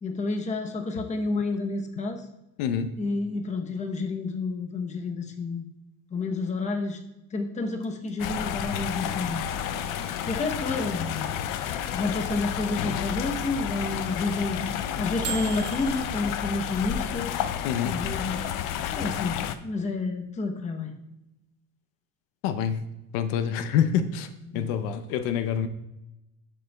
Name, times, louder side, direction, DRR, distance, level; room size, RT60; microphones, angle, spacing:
voice 1, 0.0-2.2 3.0-5.7 6.1-7.0 7.3-9.5 9.8-11.4 11.9-14.6 15.0-17.4 17.8-18.5 19.0-20.9 24.5-24.7, left 3 dB, 15° left, 4 dB, 0.8 m, -30 dB
voice 2, 2.6-2.9 17.6-18.0 22.4-22.8 23.1-24.3 24.5-25.7, left 8 dB, 90° left, 10 dB, 0.8 m, -26 dB
sound 1, 7.8-16.1, right 10 dB, 55° right, 1.3 m, -38 dB
sound 2, 8.2-19.6, left 10 dB, 50° left, 0.5 m, -31 dB
12.0 x 7.0 x 2.3 m, 0.92 s
cardioid pair, 145°, 43 cm